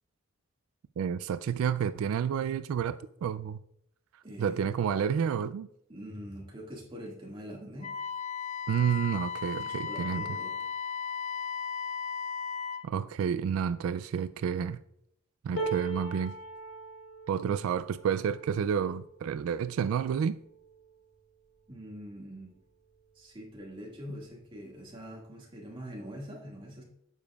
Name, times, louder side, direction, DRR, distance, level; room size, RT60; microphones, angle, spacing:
voice 1, 1.0-3.6 4.4-5.7 8.7-10.2 12.8-14.8 15.4-16.3 17.3-20.4, right 7 dB, 90° right, 0.3 m, -30 dB
voice 2, 4.2-4.7 5.9-7.9 9.6-10.6 21.7-22.6 23.2-26.8, equal, 25° right, 1.9 m, -44 dB
Wind instrument woodwind instrument, 7.8-12.9, left 6 dB, 35° left, 0.4 m, -36 dB
sound 1, 15.6-21.7 22.3-22.5 22.8-23.5 24.5-24.6, right 3 dB, 70° left, 1.9 m, -41 dB
9.5 x 7.0 x 2.3 m
head